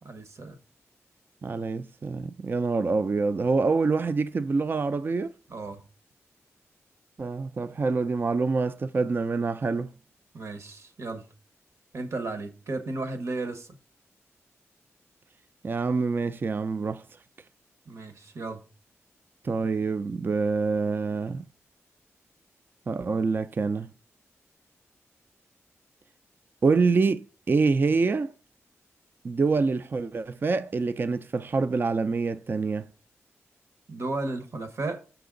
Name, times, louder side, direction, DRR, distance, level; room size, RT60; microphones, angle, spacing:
voice 1, 0.0-0.6 5.5-5.8 10.3-11.3 11.9-13.7 17.9-18.6 33.9-35.0, right 2 dB, 65° right, 1.2 m, -34 dB
voice 2, 1.4-5.3 7.2-9.9 15.6-17.0 19.4-21.5 22.9-23.9 26.6-28.3 29.2-32.9, right 4 dB, 45° right, 0.4 m, -26 dB
6.1 x 5.9 x 3.8 m
wide cardioid pair, 85°, 5 cm